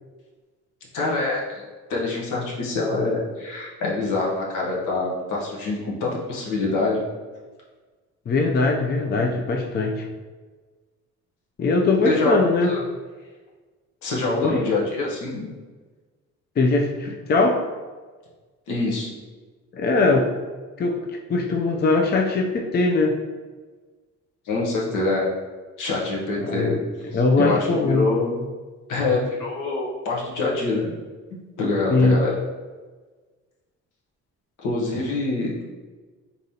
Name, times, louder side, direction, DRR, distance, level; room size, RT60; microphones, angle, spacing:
voice 1, 0.9-1.6 1.9-7.0 12.0-12.8 14.0-15.5 18.7-19.1 24.5-25.2 25.8-26.8 27.1-28.4 28.9-30.9 31.6-32.3 34.6-35.6, left 3 dB, 85° left, -3 dB, 1.1 m, -25 dB
voice 2, 8.3-10.0 11.6-12.7 14.4-14.7 16.6-17.6 19.7-20.3 20.8-21.0 21.3-23.2 26.4-26.8 27.1-28.1 31.9-32.2, left 3 dB, 35° left, 2 dB, 0.5 m, -21 dB
4.0 x 3.6 x 2.8 m, 1.4 s
cardioid pair, 90°, 30 cm